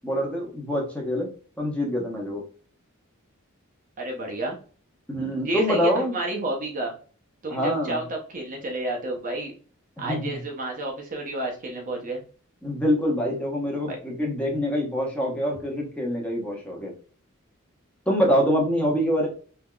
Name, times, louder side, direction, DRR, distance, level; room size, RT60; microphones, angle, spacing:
voice 1, 0.0-1.3 1.6-2.4 5.1-6.1 7.5-8.0 10.0-10.4 12.6-16.9 18.1-19.3, equal, 5° left, -2 dB, 0.9 m, -25 dB
voice 2, 4.0-4.6 5.4-6.9 7.4-9.5 10.0-12.2 13.9-14.0, right 2 dB, 40° right, 1 dB, 0.7 m, -30 dB
3.5 x 2.8 x 2.3 m, 0.40 s
head